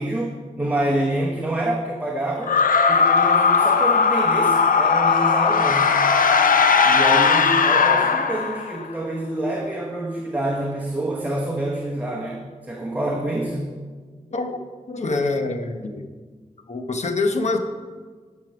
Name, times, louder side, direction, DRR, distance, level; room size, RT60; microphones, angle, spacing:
voice 1, 0.0-2.5 2.9-6.0 6.8-13.7, right 1 dB, 10° right, 1.0 m, -27 dB
sound 1, 2.4-8.9, left 5 dB, 90° left, 0.5 m, -18 dB
voice 2, 14.9-16.1 16.7-17.6, left 3 dB, 55° left, 0.9 m, -25 dB
11.0 x 5.4 x 5.8 m
wide cardioid pair, 85°, 14 cm